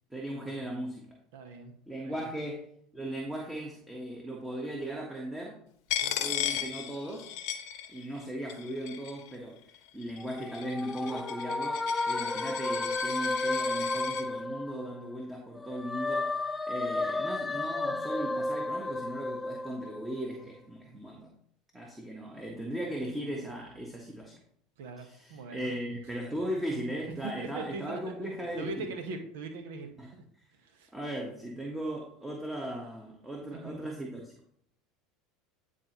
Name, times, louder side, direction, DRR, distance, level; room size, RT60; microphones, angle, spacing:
voice 1, 0.1-1.2 1.9-2.7 2.9-5.6 6.2-7.3 7.9-9.6 9.9-16.3 16.7-21.3 21.7-24.4 25.0-28.9 30.0-30.1 30.9-34.3, right 1 dB, 10° right, 0 dB, 1.3 m, -37 dB
voice 2, 1.3-1.7 2.0-2.3 6.0-6.2 24.8-25.7 27.2-28.0 28.6-30.2 30.6-30.9 33.5-33.9, right 3 dB, 65° right, 6 dB, 1.1 m, -41 dB
Coin (dropping), 5.9-8.2 8.5-9.3 10.0-14.2, left 10 dB, 60° left, 0.8 m, -36 dB
sound 1, 10.2-15.2 15.6-20.3, left 2 dB, 10° left, 0.3 m, -33 dB
9.9 x 4.1 x 3.0 m, 0.64 s
hypercardioid pair, 75°, 0 cm